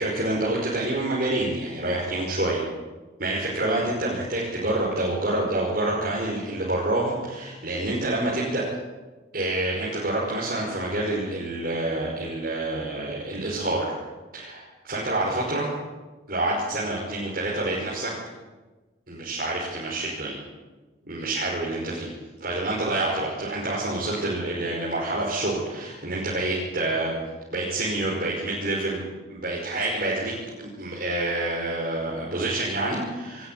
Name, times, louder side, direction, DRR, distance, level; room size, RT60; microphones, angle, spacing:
voice 1, 0.0-2.6 3.2-8.6 9.3-14.0 14.3-15.7 16.3-18.1 19.1-20.4 21.1-22.1 22.4-27.1 27.5-29.0 29.3-30.3 30.6-33.5, right 2 dB, 50° right, -5 dB, 5.5 m, -27 dB
27.5 x 13.5 x 9.2 m, 1.2 s
head